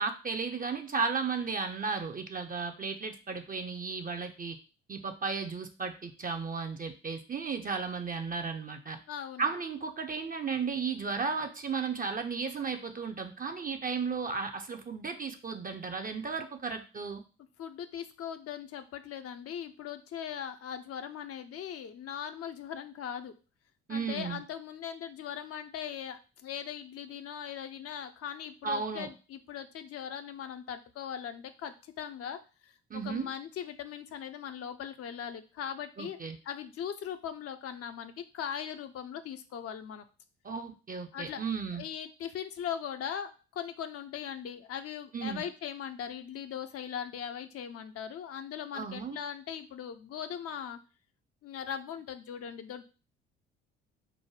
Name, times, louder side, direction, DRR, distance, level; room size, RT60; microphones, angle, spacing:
voice 1, 0.0-4.6 4.9-9.0 9.4-17.2 23.9-24.4 28.6-29.1 32.9-33.3 36.0-36.4 40.4-41.8 45.1-45.4 48.7-49.2, right 5 dB, 25° right, 6 dB, 0.6 m, -34 dB
voice 2, 9.1-9.5 17.6-23.3 23.9-32.7 33.0-36.2 36.4-40.0 41.1-41.4 41.7-50.8 51.4-52.8, left 8 dB, 45° left, 8 dB, 0.6 m, -40 dB
4.7 x 2.1 x 4.7 m, 0.34 s
hypercardioid pair, 50°, 32 cm